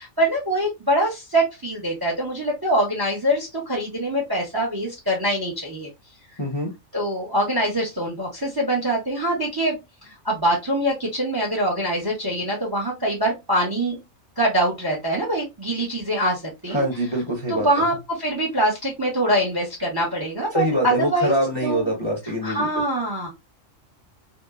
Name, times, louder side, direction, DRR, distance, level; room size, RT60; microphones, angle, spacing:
voice 1, 0.0-5.9 6.9-9.8 10.0-14.0 14.4-16.8 17.5-21.3 21.6-21.9 22.4-23.3, right 1 dB, 25° right, -1 dB, 0.5 m, -24 dB
voice 2, 6.4-6.7 16.7-17.8 20.5-22.7, right 1 dB, 30° left, -3 dB, 0.6 m, -24 dB
2.8 x 2.0 x 2.3 m, 0.22 s
omnidirectional pair, 1.4 m